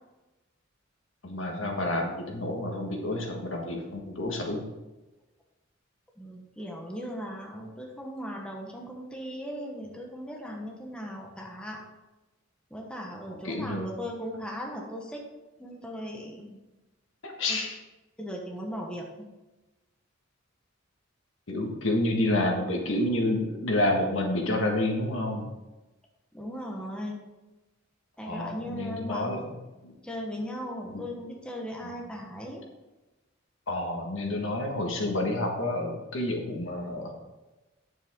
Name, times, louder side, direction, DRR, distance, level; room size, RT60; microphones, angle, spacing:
voice 1, 1.2-4.6 13.4-13.9 17.2-17.8 21.5-25.4 28.3-29.4 29.8-29.9 30.9-31.0 33.7-37.1, left 1 dB, 70° left, 1 dB, 1.6 m, -29 dB
voice 2, 6.2-11.8 12.7-15.3 15.6-16.6 17.5-17.6 18.2-19.3 26.3-27.2 28.2-29.4 30.0-32.6, equal, 5° left, 0 dB, 1.1 m, -38 dB
8.8 x 7.3 x 3.7 m, 1.1 s
head